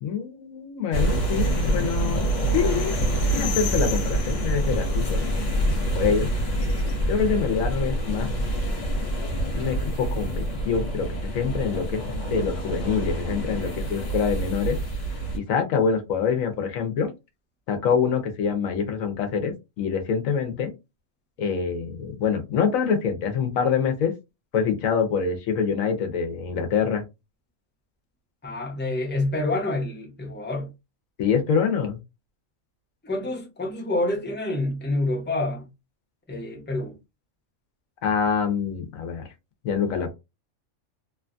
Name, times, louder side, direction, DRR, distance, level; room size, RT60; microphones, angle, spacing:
voice 1, 0.0-2.2 2.5-3.0 3.3-5.3 5.9-6.3 7.1-8.3 9.5-12.0 12.3-14.8 15.3-17.1 17.7-20.7 21.4-24.1 24.5-27.0 31.2-32.0 38.0-39.2 39.6-40.1, left 6 dB, 85° left, 1.1 m, -25 dB
sound 1, 0.9-15.4, right 1 dB, 70° left, 1.3 m, -26 dB
voice 2, 28.4-30.7 33.0-35.7 36.3-37.0, left 2 dB, 10° left, 0.8 m, -27 dB
3.0 x 2.3 x 2.5 m
omnidirectional pair, 1.4 m